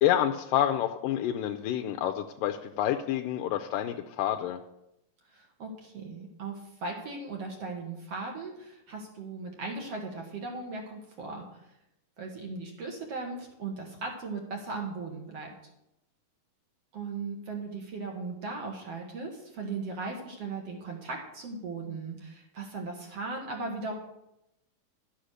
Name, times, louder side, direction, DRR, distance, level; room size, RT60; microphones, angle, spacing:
voice 1, 0.0-4.6, left 11 dB, 85° left, 4 dB, 2.3 m, -28 dB
voice 2, 5.3-11.6 12.2-15.5 16.9-23.9, right 3 dB, 55° right, 1 dB, 2.3 m, -38 dB
11.5 x 7.4 x 6.4 m, 0.86 s
omnidirectional pair, 3.8 m